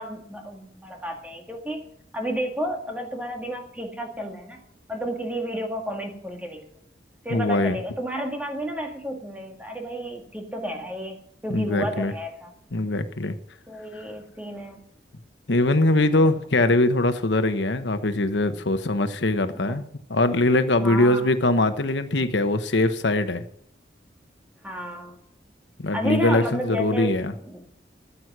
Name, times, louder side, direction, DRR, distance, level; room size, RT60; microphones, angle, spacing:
voice 1, 0.0-1.9 2.1-4.6 4.9-6.6 7.2-11.1 11.4-12.5 13.7-14.8 16.2-16.3 19.5-19.8 20.8-21.3 24.6-25.2 25.9-27.6, right 1 dB, 10° right, 2 dB, 1.9 m, -32 dB
voice 2, 7.3-7.8 11.5-12.1 12.7-13.3 15.5-19.8 20.1-23.4 25.8-27.3, left 2 dB, 90° left, 9 dB, 1.0 m, -22 dB
14.0 x 8.1 x 6.1 m, 0.64 s
head